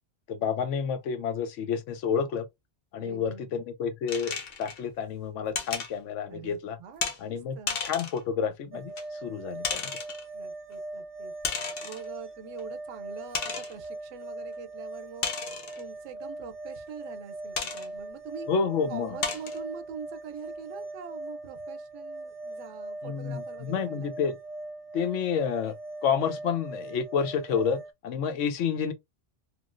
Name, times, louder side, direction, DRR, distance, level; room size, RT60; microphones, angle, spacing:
voice 1, 0.3-2.4 2.9-6.8 7.2-9.9 18.5-19.2 23.0-24.4 24.9-25.8 26.0-28.9, left 6 dB, 85° left, 1.0 m, -29 dB
voice 2, 3.0-3.5 6.3-7.8 10.3-11.3 11.8-15.3 15.8-18.5 18.9-24.1, right 6 dB, 90° right, 1.0 m, -44 dB
sound 1, 4.1-4.8 5.5-5.9 7.0-7.2 7.7-8.2 9.0-9.1 9.6-10.2 11.4-12.1 12.6-12.7 13.3-13.8 15.2-15.8 17.6-17.9 18.5-18.6 19.2-19.6, left 5 dB, 55° left, 0.9 m, -33 dB
sound 2, 8.7-27.9, right 2 dB, 15° right, 0.6 m, -41 dB
3.0 x 2.6 x 2.4 m
omnidirectional pair, 1.2 m